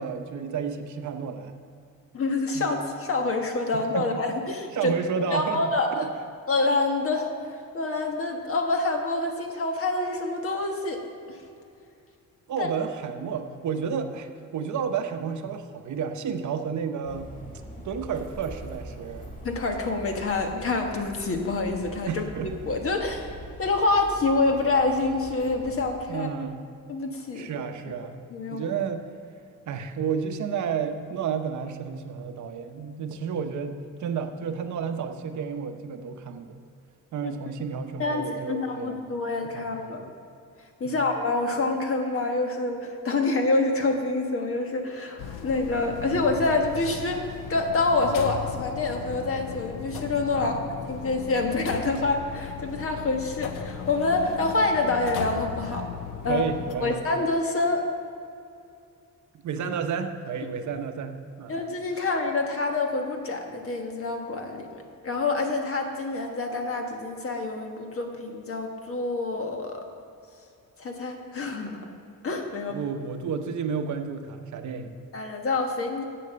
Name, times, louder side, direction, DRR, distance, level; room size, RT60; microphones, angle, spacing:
voice 1, 0.0-1.5 2.5-2.7 3.7-4.3 4.7-5.6 6.0-6.1 12.5-17.3 17.8-19.3 22.1-22.5 26.1-26.7 27.3-29.0 29.7-36.6 37.1-39.2 39.5-39.9 40.8-41.0 50.3-50.6 56.2-57.0 59.3-61.5 62.0-62.1 72.7-74.9, right 6 dB, 65° right, 7 dB, 0.8 m, -31 dB
voice 2, 2.1-4.9 5.3-6.1 6.5-11.0 11.3-11.4 12.6-12.7 19.4-23.3 23.6-26.3 26.9-27.7 28.3-28.7 37.2-37.3 38.0-40.0 40.8-47.2 47.5-50.6 50.9-55.9 56.2-56.4 56.8-57.9 61.5-69.9 70.8-71.8 72.2-72.8 75.1-76.0, left 3 dB, 45° left, 3 dB, 1.4 m, -27 dB
sound 1, 17.0-25.9, right 1 dB, 25° left, 2.2 m, -43 dB
sound 2, 45.2-56.8, left 7 dB, 85° left, 0.8 m, -37 dB
8.3 x 7.8 x 6.8 m, 2.5 s
cardioid pair, 120°, 31 cm